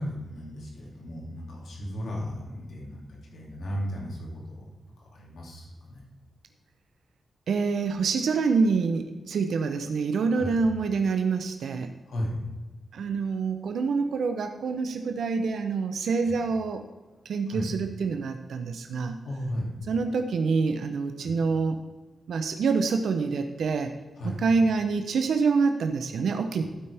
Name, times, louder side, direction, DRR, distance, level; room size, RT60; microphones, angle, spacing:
voice 1, 0.0-4.2 4.5-4.7 5.0-6.0 10.4-10.5 12.0-12.4 16.3-16.4 17.5-17.7 19.2-19.7 21.2-21.4 24.2-24.4, equal, 75° left, -2 dB, 2.6 m, -35 dB
voice 2, 7.5-11.9 12.9-16.8 17.3-19.2 19.9-21.8 22.3-23.9 24.2-26.6, right 4 dB, 80° right, 6 dB, 0.7 m, -26 dB
12.0 x 8.8 x 3.4 m, 1.3 s
wide cardioid pair, 180°, 0 cm